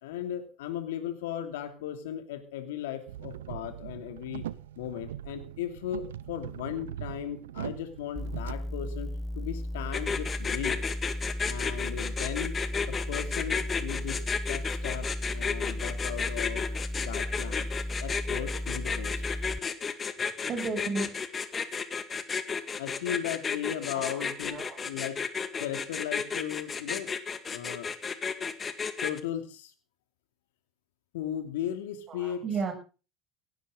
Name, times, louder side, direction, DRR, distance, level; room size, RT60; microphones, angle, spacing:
voice 1, 0.0-4.4 4.8-10.8 11.5-12.5 12.9-14.2 14.5-16.7 17.0-17.7 18.0-19.2 22.8-25.2 25.6-27.1 27.5-27.9 29.0-29.7 31.1-32.4, left 10 dB, 75° left, 7 dB, 2.8 m, -36 dB
sound 1, 3.1-8.5, right 12 dB, 80° right, 0.7 m, -41 dB
sound 2, 8.2-19.6, left 1 dB, 10° right, 1.3 m, -35 dB
sound 3, 9.9-29.2, left 6 dB, 30° left, 2.0 m, -32 dB
voice 2, 20.5-21.1 23.9-24.8 32.1-32.7, right 4 dB, 40° right, 5 dB, 7.6 m, -34 dB
17.5 x 16.5 x 4.0 m, 0.35 s
hypercardioid pair, 75°, 0 cm